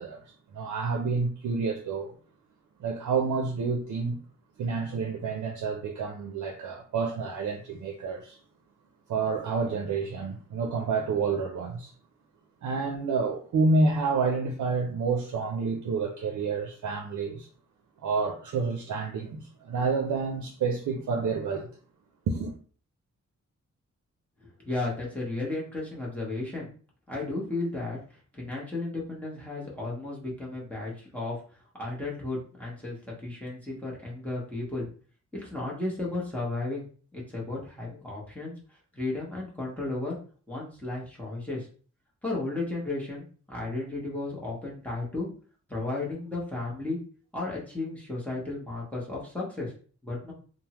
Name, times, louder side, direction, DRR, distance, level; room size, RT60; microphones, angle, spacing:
voice 1, 0.0-2.1 2.8-4.2 4.6-8.4 9.1-11.9 12.6-17.5 18.0-21.7 22.3-22.6, right 4 dB, 80° right, 0.5 m, -29 dB
voice 2, 24.4-26.7 27.1-28.0 28.3-31.4 31.8-34.9 35.3-36.8 37.1-38.5 38.9-40.2 40.5-41.7 42.2-45.3 45.7-47.0 47.3-49.7 50.0-50.3, left 2 dB, 5° left, 0.8 m, -34 dB
3.3 x 2.0 x 2.9 m
wide cardioid pair, 150°, 29 cm